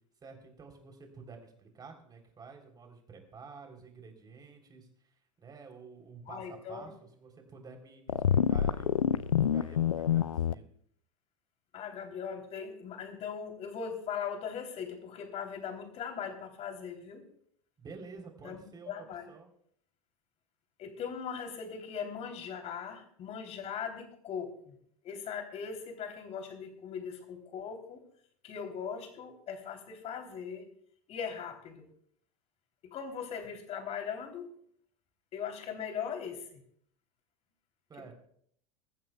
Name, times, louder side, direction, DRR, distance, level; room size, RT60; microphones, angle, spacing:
voice 1, 0.2-4.9 5.4-10.7 17.8-18.9 19.3-19.5 37.9-38.1, right 4 dB, 25° right, 4 dB, 3.5 m, -50 dB
voice 2, 6.3-6.9 11.7-17.2 18.4-19.3 20.8-24.7 25.0-28.0 28.4-30.7 31.1-31.8 32.8-34.5 35.3-36.6, left 7 dB, 40° left, 5 dB, 3.2 m, -39 dB
sound 1, 8.1-10.5, left 9 dB, 80° left, 0.4 m, -27 dB
22.5 x 14.5 x 2.3 m, 0.65 s
figure-of-eight pair, 85°, 17 cm